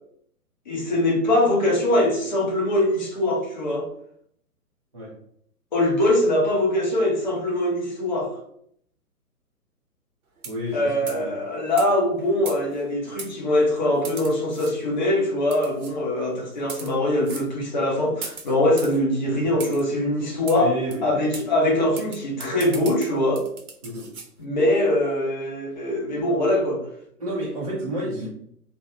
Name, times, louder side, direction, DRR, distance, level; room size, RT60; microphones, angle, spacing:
voice 1, 0.7-3.9 5.7-8.3 10.7-20.7 21.0-23.4 24.4-26.8, left 1 dB, 30° left, -1 dB, 0.6 m, -22 dB
voice 2, 10.4-11.4 20.5-21.2 23.8-24.2 27.2-28.3, right 1 dB, 25° right, -7 dB, 0.5 m, -30 dB
sound 1, 10.4-10.7 11.1-11.3 11.8-11.9 12.5-12.8 13.2-13.3 14.0-14.7 15.5-15.9 16.6-16.9 17.2-17.5 18.2-19.0 19.6-19.8 20.5-20.6 20.9-21.0 21.3-21.5 22.0-24.3, right 4 dB, 65° right, 0.8 m, -38 dB
2.7 x 2.1 x 2.7 m, 0.68 s
figure-of-eight pair, 130°, 46 cm